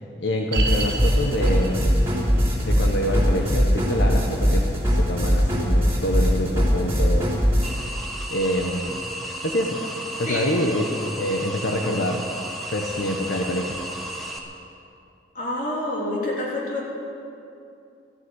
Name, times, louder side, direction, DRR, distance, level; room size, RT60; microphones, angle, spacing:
voice 1, 0.2-2.1 2.6-4.6 5.0-7.3 8.3-9.0 9.4-9.8 10.2-12.2 12.7-13.7, left 1 dB, 85° left, 1 dB, 1.2 m, -26 dB
sound 1, 0.5-7.7, equal, 15° right, 3.3 m, -21 dB
sound 2, 0.5-11.8 12.1-12.2 12.8-12.9, right 2 dB, 60° right, 1.7 m, -37 dB
sound 3, 7.6-14.4, right 1 dB, ahead, 1.4 m, -34 dB
voice 2, 15.3-16.9, left 1 dB, 50° left, -5 dB, 3.5 m, -27 dB
13.5 x 10.0 x 9.8 m, 2.6 s
head